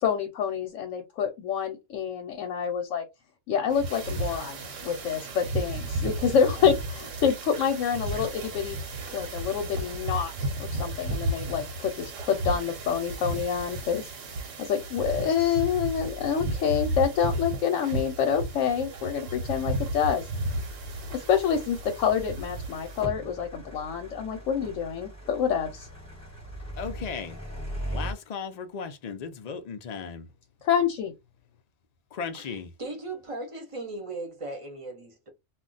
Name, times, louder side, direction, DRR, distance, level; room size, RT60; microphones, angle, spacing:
voice 1, 0.0-3.0 3.5-4.6 4.8-8.8 9.1-14.1 14.6-20.3 21.1-25.9 30.6-31.1, left 7 dB, 90° left, 1.0 m, -27 dB
sound 1, 3.7-23.0, right 1 dB, 85° right, 1.2 m, -33 dB
sound 2, 20.3-28.1, right 1 dB, 15° left, 1.0 m, -40 dB
voice 2, 26.8-27.4 27.9-30.3 32.1-32.7, left 6 dB, 70° left, 0.4 m, -36 dB
voice 3, 32.3-35.3, right 2 dB, 35° right, 0.6 m, -38 dB
2.3 x 2.2 x 3.8 m
omnidirectional pair, 1.3 m